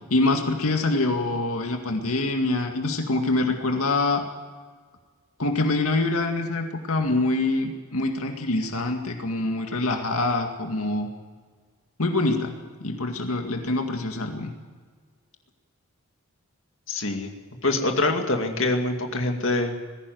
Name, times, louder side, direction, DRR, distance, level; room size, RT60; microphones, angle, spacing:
voice 1, 0.1-4.2 5.4-11.1 12.0-12.5 12.8-14.5, left 2 dB, 85° left, 3 dB, 2.1 m, -25 dB
voice 2, 16.9-17.3 17.6-19.9, left 2 dB, 60° left, 3 dB, 2.4 m, -25 dB
20.5 x 16.0 x 9.4 m, 1.5 s
head